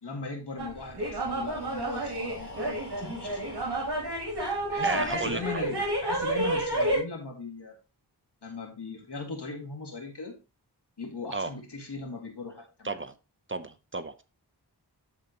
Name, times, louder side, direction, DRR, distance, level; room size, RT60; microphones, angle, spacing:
voice 1, 0.0-3.6 4.7-7.8 8.4-10.4 11.0-13.0, left 4 dB, 75° left, 2.3 m, -38 dB
sound 1, 0.6-7.0, right 1 dB, 70° right, 5.2 m, -30 dB
Breathing, 1.0-4.9, left 1 dB, 45° left, 2.9 m, -46 dB
voice 2, 4.4-5.6 6.4-6.6 11.3-11.5 12.8-13.1 13.5-14.2, right 3 dB, 30° right, 0.8 m, -34 dB
13.0 x 4.4 x 3.0 m
wide cardioid pair, 55°, 41 cm